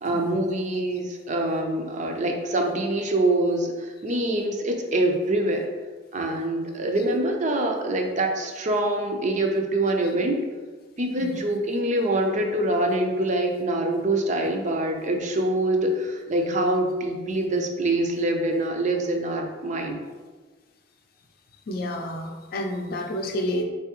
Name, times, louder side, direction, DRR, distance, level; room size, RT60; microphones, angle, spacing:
voice 1, 0.0-5.7 6.1-10.4 11.0-20.0, right 1 dB, 40° right, 3 dB, 0.5 m, -25 dB
voice 2, 21.7-23.6, left 1 dB, 55° left, 3 dB, 0.5 m, -30 dB
4.0 x 3.4 x 3.0 m, 1.3 s
head